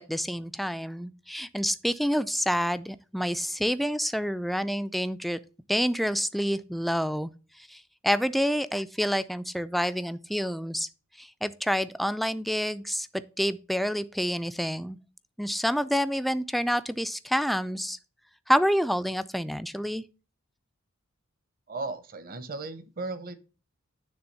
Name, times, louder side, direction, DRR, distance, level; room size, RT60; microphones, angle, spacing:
voice 1, 0.0-5.4 5.7-7.3 7.6-10.9 11.2-15.0 15.4-18.0 18.5-20.0, equal, ahead, 0.3 m, -28 dB
voice 2, 21.7-23.3, right 3 dB, 45° right, 0.9 m, -36 dB
9.7 x 3.5 x 6.7 m
head